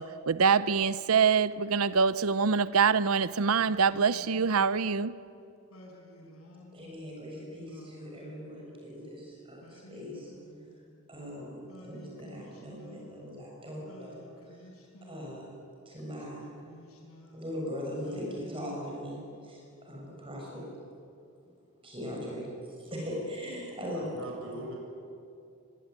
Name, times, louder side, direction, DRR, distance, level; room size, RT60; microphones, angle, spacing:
voice 1, 0.0-5.2, right 6 dB, 85° right, 0.7 m, -25 dB
Singing, 3.6-5.1 5.7-7.0 7.6-9.0 9.6-11.1 11.7-13.5 13.9-15.5 16.0-17.6 18.0-19.6, equal, 80° left, 5.4 m, -52 dB
voice 2, 6.7-10.3 11.1-14.6 15.0-15.6 15.9-16.5 17.3-20.6 21.8-24.1, equal, 25° right, 7.1 m, -40 dB
voice 3, 23.9-24.8, right 1 dB, 65° right, 7.9 m, -41 dB
23.5 x 23.0 x 9.8 m
head